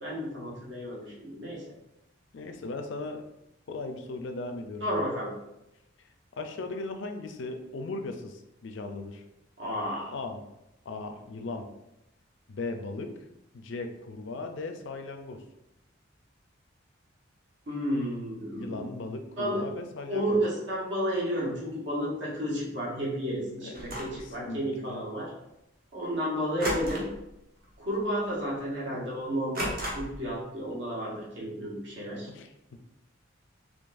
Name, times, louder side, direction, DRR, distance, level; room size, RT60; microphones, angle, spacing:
voice 1, 0.0-1.6 4.8-5.3 9.6-10.1 17.7-18.9 19.4-19.6 20.1-25.3 25.9-27.1 27.8-32.3, equal, 65° right, -4 dB, 1.2 m, -32 dB
voice 2, 2.3-3.2 3.7-5.0 6.0-6.1 6.4-9.2 10.1-10.4 10.9-11.7 12.5-13.1 13.5-15.4 18.5-20.4 23.6-23.8 24.1-25.1 32.3-32.8, left 3 dB, 70° left, 6 dB, 0.4 m, -38 dB
sound 1, 23.7-24.2 26.6-27.3 27.6-27.9 28.3-28.4 29.5-30.3, equal, 45° right, 0.9 m, -33 dB
3.8 x 3.1 x 2.5 m, 0.88 s
head